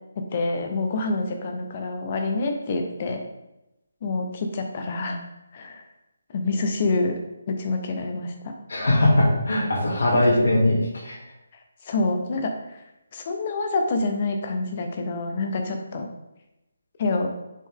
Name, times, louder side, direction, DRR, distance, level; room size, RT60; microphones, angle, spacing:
voice 1, 0.2-3.2 4.0-5.2 5.5-5.8 6.3-7.1 7.5-8.5 10.3-10.5 11.8-12.8 13.1-16.1 17.0-17.3, left 3 dB, 35° left, 4 dB, 0.9 m, -27 dB
voice 2, 8.7-11.2, left 1 dB, 80° left, -4 dB, 2.4 m, -20 dB
7.3 x 4.4 x 3.6 m, 0.92 s
hypercardioid pair, 165°, 0 cm